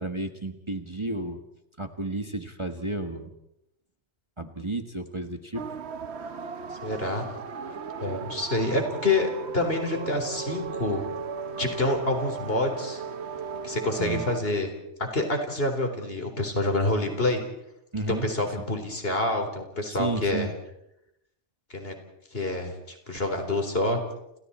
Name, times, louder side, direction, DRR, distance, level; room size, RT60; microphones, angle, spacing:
voice 1, 0.0-1.4 1.8-3.3 4.4-5.6 14.0-14.2 17.9-18.3 20.0-20.5, right 2 dB, 25° right, 5 dB, 1.5 m, -32 dB
sound 1, 5.5-14.4, right 5 dB, 65° right, 1.3 m, -36 dB
voice 2, 6.8-7.2 8.0-11.0 11.6-13.0 13.6-14.7 15.0-17.4 18.1-20.5 21.7-21.9 22.3-24.0, left 2 dB, 55° left, 5 dB, 4.2 m, -27 dB
29.5 x 29.5 x 4.4 m, 0.83 s
omnidirectional pair, 1.2 m